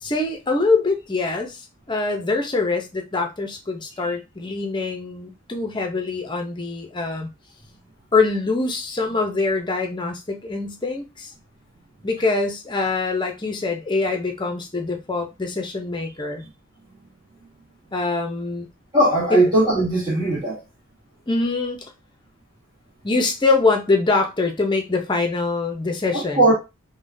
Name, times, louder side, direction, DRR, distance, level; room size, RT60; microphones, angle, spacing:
voice 1, 0.0-7.3 8.1-11.3 12.0-16.5 17.9-18.7 19.3-19.4 21.3-21.8 23.0-26.5, left 3 dB, 20° left, 0.5 m, -24 dB
voice 2, 18.9-20.6 26.1-26.5, right 1 dB, 20° right, 1.1 m, -18 dB
3.5 x 2.1 x 2.6 m
head